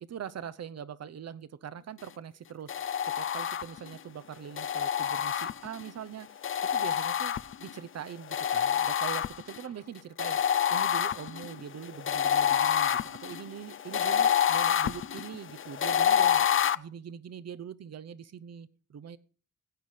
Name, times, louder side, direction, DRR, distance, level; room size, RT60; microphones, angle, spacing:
voice 1, 0.1-6.3 6.7-7.3 7.6-10.4 10.7-16.5 16.7-19.2, right 8 dB, 55° right, 16 dB, 0.8 m, -42 dB
sound 1, 2.7-3.9 4.6-5.9 6.4-7.8 8.3-9.6 10.2-16.7, left 9 dB, 45° left, 0.5 m, -27 dB
16.5 x 9.6 x 5.0 m, 0.38 s
wide cardioid pair, 110°, 30 cm